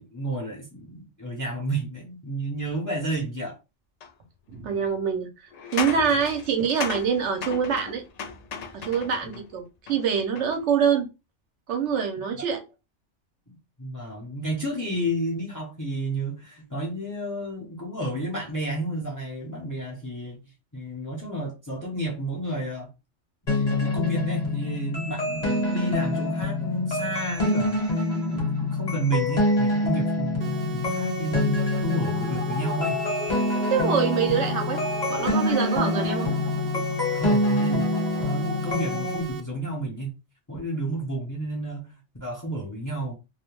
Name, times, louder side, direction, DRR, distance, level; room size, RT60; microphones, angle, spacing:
voice 1, 0.0-3.6 6.0-6.1 12.3-12.4 13.8-20.4 20.7-22.9 23.5-33.0 37.1-40.1 40.5-43.1, right 1 dB, 20° left, 0.6 m, -31 dB
sound 1, 4.0-4.1 5.5-9.4 9.9-10.6, left 6 dB, 75° left, 0.3 m, -36 dB
voice 2, 4.5-5.3 5.7-8.0 8.7-11.1 11.7-12.6 33.7-34.8 35.1-36.3, right 7 dB, 75° right, 0.9 m, -25 dB
sound 2, 23.5-39.2, left 2 dB, 40° left, 1.1 m, -26 dB
sound 3, 30.4-39.4, right 6 dB, 60° right, 0.5 m, -37 dB
2.3 x 2.1 x 3.0 m
omnidirectional pair, 1.2 m